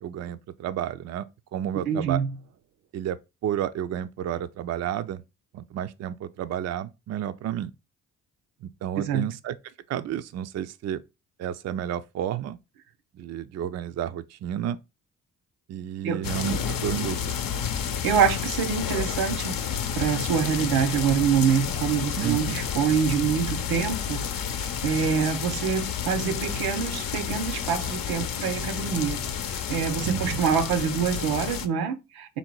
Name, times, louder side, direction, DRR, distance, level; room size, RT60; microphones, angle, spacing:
voice 1, 0.0-1.3 1.5-2.2 2.9-5.2 5.5-7.7 8.8-9.6 9.9-11.0 11.4-12.6 13.1-14.8 15.7-17.4 22.1-22.6 30.0-30.4, right 10 dB, 45° right, 0.4 m, -31 dB
voice 2, 1.7-2.3 9.0-9.3 16.0-16.3 18.0-19.5 20.0-29.2 29.5-32.4, right 7 dB, 80° right, 0.7 m, -26 dB
sound 1, 16.2-31.7, left 7 dB, 65° left, 0.7 m, -30 dB
3.6 x 2.7 x 4.5 m
supercardioid pair, 50°, 36 cm